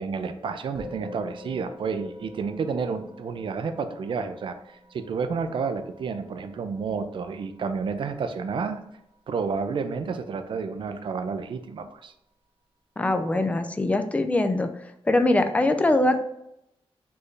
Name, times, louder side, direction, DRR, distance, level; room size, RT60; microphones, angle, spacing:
voice 1, 0.0-4.6 4.9-8.8 9.3-12.1, right 5 dB, 55° right, 9 dB, 0.4 m, -30 dB
Musical instrument, 0.8-10.3, left 2 dB, 5° right, 0.9 m, -47 dB
voice 2, 13.0-14.7 15.0-16.2, left 2 dB, 15° left, 7 dB, 0.3 m, -22 dB
4.3 x 3.2 x 3.2 m, 0.81 s
wide cardioid pair, 165°, 10 cm